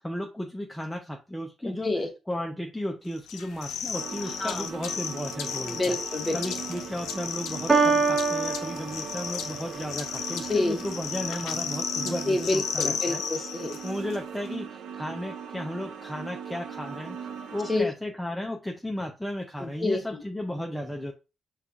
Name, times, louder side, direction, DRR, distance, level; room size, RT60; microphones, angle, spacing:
voice 1, 0.0-1.9 2.3-6.0 6.3-13.2 13.8-17.2 17.5-21.1, left 1 dB, 5° left, 2 dB, 0.5 m, -34 dB
voice 2, 1.6-2.1 4.4-4.7 5.7-6.4 10.5-10.8 12.0-13.7 17.7-17.9 19.6-20.2, left 2 dB, 25° left, 4 dB, 0.9 m, -28 dB
sound 1, 3.3-14.2, left 8 dB, 85° left, 0.4 m, -34 dB
sound 2, 3.9-17.8, right 7 dB, 80° right, 0.5 m, -40 dB
Piano, 7.7-9.7, right 4 dB, 15° right, 1.1 m, -25 dB
5.3 x 2.3 x 2.5 m, 0.29 s
cardioid pair, 90°, 0 cm